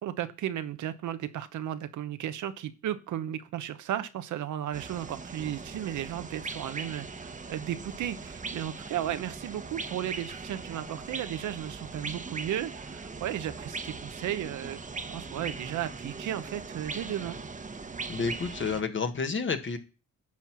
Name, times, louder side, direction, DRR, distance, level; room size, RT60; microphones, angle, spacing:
voice 1, 0.0-14.8 15.1-17.4, right 11 dB, 75° right, 11 dB, 0.9 m, -34 dB
sound 1, 4.7-18.8, right 4 dB, 25° right, 1.1 m, -40 dB
voice 2, 18.1-19.8, left 5 dB, 40° left, 7 dB, 1.5 m, -30 dB
10.5 x 4.4 x 7.4 m, 0.33 s
cardioid pair, 90°, 30 cm